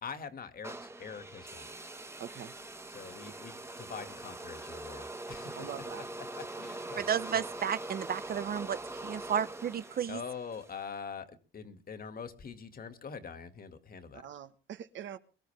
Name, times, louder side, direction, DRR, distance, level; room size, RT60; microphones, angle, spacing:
voice 1, 0.0-1.7 2.9-5.7 6.4-7.0 7.3-7.4 10.1-14.3, left 6 dB, 45° left, 2.2 m, -44 dB
sound 1, 0.6-10.8, right 2 dB, 15° right, 1.6 m, -43 dB
voice 2, 2.2-2.5 5.5-6.0 14.1-15.2, right 9 dB, 70° right, 1.5 m, -43 dB
voice 3, 7.0-10.2, right 8 dB, 50° right, 0.8 m, -33 dB
23.0 x 13.5 x 3.5 m
cardioid pair, 90°, 20 cm